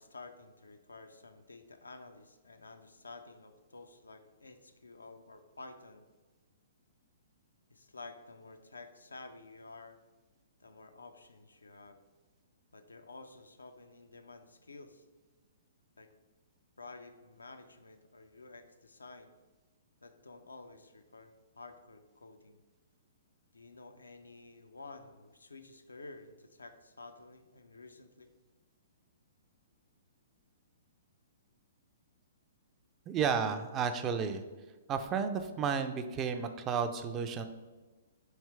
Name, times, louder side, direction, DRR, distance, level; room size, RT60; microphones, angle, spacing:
voice 1, 0.0-6.0 7.7-10.0 10.6-12.0 12.7-15.0 16.0-16.1 16.8-19.3 20.0-22.6 23.5-28.3, left 3 dB, 80° left, 7 dB, 0.4 m, -51 dB
voice 2, 33.1-34.4 34.9-37.4, right 6 dB, 25° right, 8 dB, 0.3 m, -32 dB
3.2 x 2.9 x 4.4 m, 1.2 s
figure-of-eight pair, 120°, 0 cm